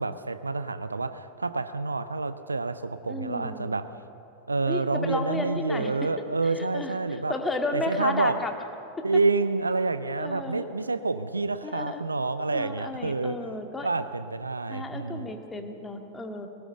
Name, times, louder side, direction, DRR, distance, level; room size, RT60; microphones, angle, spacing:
voice 1, 0.0-3.9 4.5-7.3 7.7-8.4 9.0-13.6 13.8-15.3, right 3 dB, 80° right, 12 dB, 0.7 m, -28 dB
voice 2, 3.1-3.7 4.7-6.1 6.6-8.5 9.0-9.1 10.2-10.7 11.6-12.0 12.5-13.9 14.7-16.5, left 2 dB, 15° left, 4 dB, 2.0 m, -33 dB
21.5 x 18.5 x 6.7 m, 2.8 s
figure-of-eight pair, 90°, 0 cm